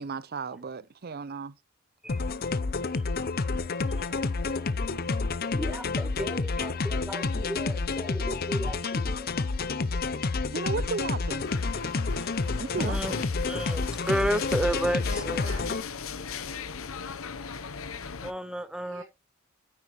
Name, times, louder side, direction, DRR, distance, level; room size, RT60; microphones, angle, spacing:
voice 1, 0.0-1.5 10.5-11.4 12.6-13.2, right 4 dB, 45° right, 0.5 m, -34 dB
sound 1, 2.1-15.8, left 3 dB, 45° left, 0.6 m, -29 dB
voice 2, 5.5-9.3 12.2-12.3 12.8-13.2 13.4-15.4 18.2-19.0, right 1 dB, 5° right, 0.7 m, -32 dB
sound 2, 11.4-18.3, left 6 dB, 75° left, 0.8 m, -39 dB
voice 3, 15.0-16.0 18.8-19.0, right 3 dB, 70° right, 4.9 m, -50 dB
9.5 x 8.5 x 3.1 m
head